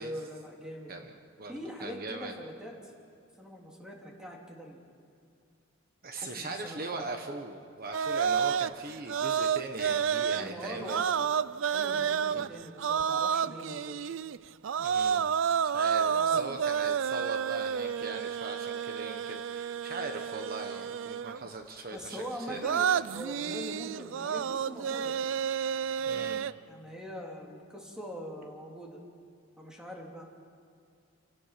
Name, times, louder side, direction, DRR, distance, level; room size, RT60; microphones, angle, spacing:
voice 1, 0.0-0.9 1.5-2.9 3.4-4.8 6.1-7.1 10.3-11.3 11.7-14.1 16.1-16.5 21.9-25.2 25.9-26.3 26.6-29.0 29.6-30.2, equal, 5° right, -1 dB, 3.0 m, -43 dB
voice 2, 0.9-2.4 6.0-11.0 12.3-12.5 14.8-15.3 15.7-23.0 26.1-26.4, right 3 dB, 50° right, 4 dB, 1.3 m, -40 dB
sound 1, 7.9-14.4 14.6-21.5 22.5-26.5, right 7 dB, 70° right, 0.4 m, -30 dB
29.0 x 17.0 x 6.0 m, 2.5 s
head